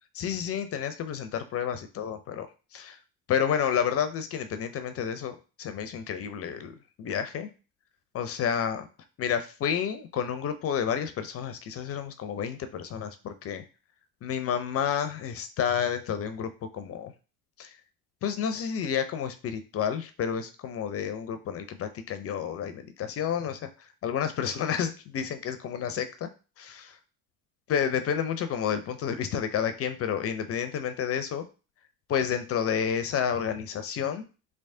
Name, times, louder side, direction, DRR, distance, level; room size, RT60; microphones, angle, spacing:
voice 1, 0.1-3.0 3.3-7.5 8.1-8.9 9.2-13.6 14.2-17.1 17.6-17.8 18.2-26.3 26.6-27.0 27.7-31.4 32.1-34.2, left 8 dB, 30° left, 10 dB, 0.4 m, -30 dB
3.2 x 3.1 x 2.6 m, 0.33 s
figure-of-eight pair, 60°, 48 cm